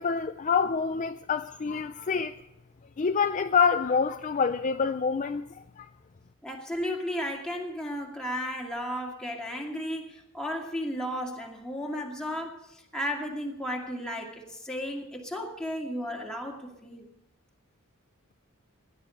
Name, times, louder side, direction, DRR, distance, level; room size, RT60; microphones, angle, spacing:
voice 1, 0.0-2.4 3.0-5.9, left 5 dB, 35° left, 0.4 m, -27 dB
voice 2, 6.4-17.1, equal, 5° left, 2.2 m, -34 dB
16.5 x 10.5 x 5.2 m
head